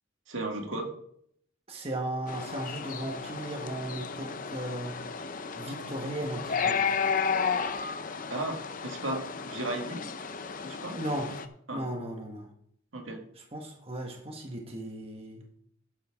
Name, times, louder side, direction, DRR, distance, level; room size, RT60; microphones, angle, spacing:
voice 1, 0.3-0.9 8.3-10.1 10.6-11.0 11.7-11.8 12.9-13.2, right 2 dB, 70° right, 3 dB, 2.0 m, -35 dB
voice 2, 1.7-4.9 5.6-6.8 10.9-11.3 11.7-12.5 13.4-15.4, right 1 dB, 30° right, 2 dB, 1.4 m, -36 dB
sound 1, 2.3-11.5, left 6 dB, 40° left, 0.7 m, -33 dB
12.0 x 9.6 x 3.6 m, 0.68 s
head